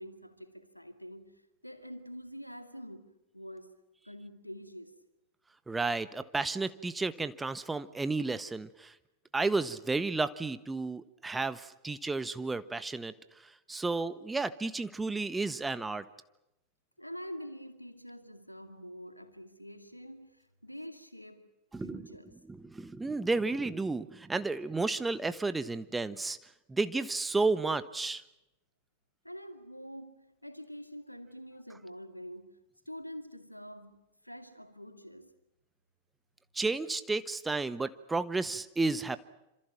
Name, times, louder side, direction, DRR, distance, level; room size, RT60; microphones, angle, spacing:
voice 1, 0.0-3.8 4.0-5.0 17.0-21.6 21.8-22.4 29.2-32.6 32.9-35.4, equal, 90° left, 2.2 m, -46 dB
voice 2, 5.7-8.9 9.3-13.1 13.4-16.0 21.7-22.1 22.5-26.4 26.7-28.2 36.5-39.2, right 3 dB, 10° right, 1.3 m, -32 dB
27.5 x 27.0 x 6.1 m
figure-of-eight pair, 90°, 0 cm